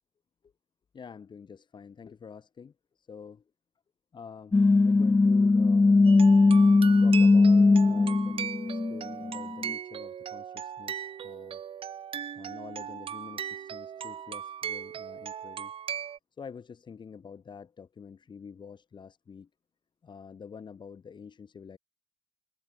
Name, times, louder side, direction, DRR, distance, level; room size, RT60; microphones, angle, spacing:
voice 1, 0.9-3.4 4.1-6.0 7.0-11.6 12.3-15.7 16.3-19.5 20.0-21.8, left 6 dB, 35° left, 5.3 m, -47 dB
sound 1, 4.5-9.7, left 3 dB, 15° left, 0.4 m, -20 dB
sound 2, 6.0-16.2, right 9 dB, 45° right, 1.1 m, -38 dB
cardioid pair, 105°, 13 cm